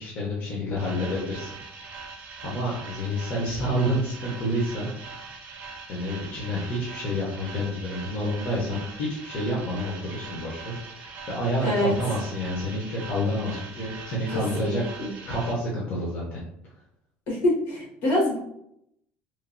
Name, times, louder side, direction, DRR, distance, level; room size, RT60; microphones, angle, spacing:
voice 1, 0.0-1.5 2.4-4.9 5.9-14.8 15.3-16.4, equal, 35° left, -4 dB, 0.6 m, -29 dB
sound 1, 0.8-15.5, right 4 dB, 45° right, 0.6 m, -42 dB
voice 2, 11.6-11.9 14.3-15.1 17.3-18.4, left 1 dB, 75° left, -4 dB, 1.4 m, -25 dB
3.0 x 2.2 x 2.5 m, 0.76 s
cardioid pair, 175°, 5 cm